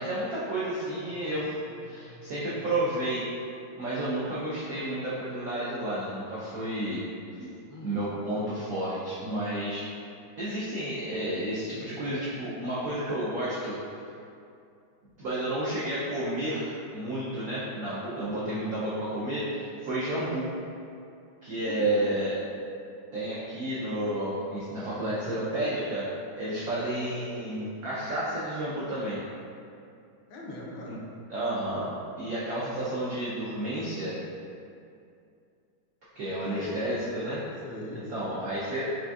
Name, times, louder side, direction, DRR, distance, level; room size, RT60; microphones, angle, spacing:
voice 1, 0.0-1.5 1.8-3.2 3.8-7.0 7.4-7.5 7.8-9.8 10.4-13.8 15.2-20.5 21.4-22.4 23.1-26.1 26.4-29.2 30.9-31.0 31.3-31.9 32.2-34.1 36.2-37.4 37.9-38.8, right 1 dB, 85° right, -9 dB, 0.7 m, -31 dB
voice 2, 1.6-2.9 7.7-8.0 18.3-18.5 21.6-21.9 24.9-25.5 26.6-26.8 30.3-31.0 36.5-36.9 37.1-38.5, left 1 dB, 75° left, -3 dB, 1.3 m, -43 dB
4.8 x 2.5 x 2.3 m, 2.5 s
omnidirectional pair, 2.2 m